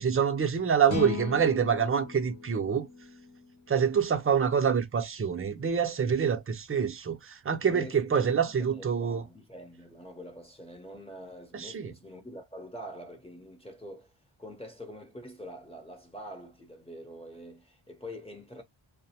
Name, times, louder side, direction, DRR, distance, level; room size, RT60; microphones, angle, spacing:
voice 1, 0.0-2.9 3.7-9.2 11.5-11.9, right 7 dB, 30° right, 0.5 m, -26 dB
sound 1, 0.9-4.2, left 4 dB, 75° left, 0.9 m, -39 dB
voice 2, 7.7-14.1 14.4-18.6, equal, 10° left, 0.7 m, -45 dB
2.5 x 2.0 x 2.7 m
wide cardioid pair, 75°, 48 cm